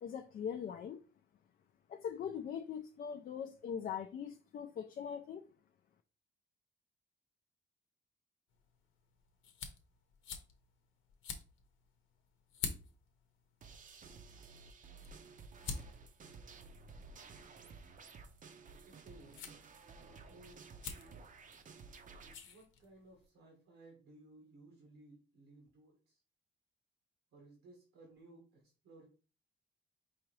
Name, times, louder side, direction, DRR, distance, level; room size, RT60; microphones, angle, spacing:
voice 1, 0.0-1.0 1.9-5.4, left 7 dB, 45° left, 0.4 m, -41 dB
sound 1, 8.5-23.3, left 6 dB, 85° left, 0.8 m, -50 dB
sound 2, 13.6-22.3, right 4 dB, 40° right, 0.6 m, -54 dB
voice 2, 18.8-19.5 20.1-20.6 22.4-26.2 27.3-29.1, right 2 dB, 85° right, 1.3 m, -59 dB
4.7 x 2.9 x 3.1 m
cardioid pair, 90°, 20 cm